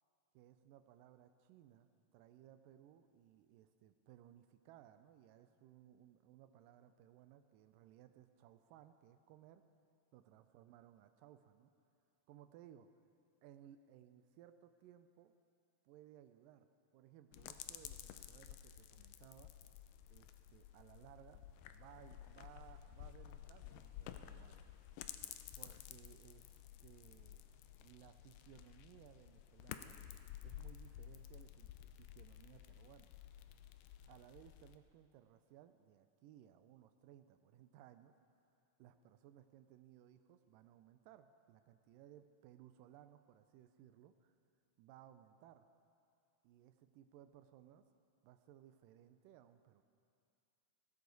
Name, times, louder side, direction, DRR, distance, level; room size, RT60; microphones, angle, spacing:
voice 1, 0.3-9.7 10.1-11.7 12.3-12.9 13.4-15.3 15.9-16.7 16.9-19.5 20.1-24.7 25.6-27.4 27.8-30.0 30.4-33.2 34.1-38.1 38.8-44.4 44.8-45.7 46.4-47.9 48.2-49.8, right 11 dB, 90° right, 10 dB, 2.3 m, -62 dB
sound 1, 17.3-34.8, left 11 dB, 85° left, 2.3 m, -53 dB
17.5 x 15.5 x 4.0 m, 2.4 s
omnidirectional pair, 3.8 m